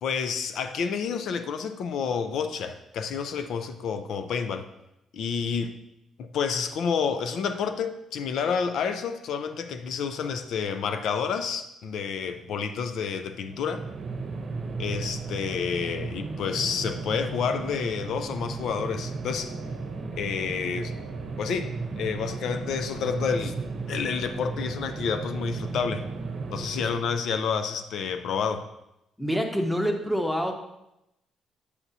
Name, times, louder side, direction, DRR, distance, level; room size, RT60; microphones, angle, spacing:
voice 1, 0.0-4.7 5.1-5.7 6.2-13.8 14.8-19.5 20.2-20.9 21.4-21.7 22.0-23.6 23.9-26.0 26.5-28.7, left 6 dB, 75° left, 9 dB, 0.5 m, -29 dB
sound 1, 13.4-27.3, right 4 dB, 45° right, 0.8 m, -35 dB
voice 2, 29.2-30.5, equal, 5° left, 4 dB, 1.0 m, -26 dB
8.2 x 7.1 x 2.8 m, 0.86 s
cardioid pair, 90°, 0 cm